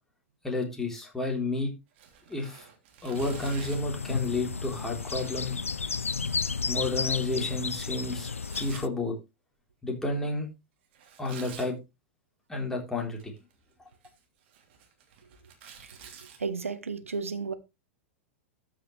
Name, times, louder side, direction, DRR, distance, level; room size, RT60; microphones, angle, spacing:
voice 1, 0.4-1.7 2.3-2.7 3.0-5.6 6.7-8.3 8.6-9.1 9.8-10.5 11.2-11.7 12.5-13.3, left 2 dB, 5° left, 3.9 m, -31 dB
Tearing, 1.9-3.9 4.8-8.8 10.9-11.7 13.0-13.5 13.9-16.4, right 7 dB, 55° right, 3.0 m, -51 dB
sound 1, 3.1-8.9, left 5 dB, 90° left, 0.4 m, -33 dB
voice 2, 16.4-17.5, right 5 dB, 85° right, 1.1 m, -33 dB
13.0 x 6.5 x 3.3 m
figure-of-eight pair, 100°, 7 cm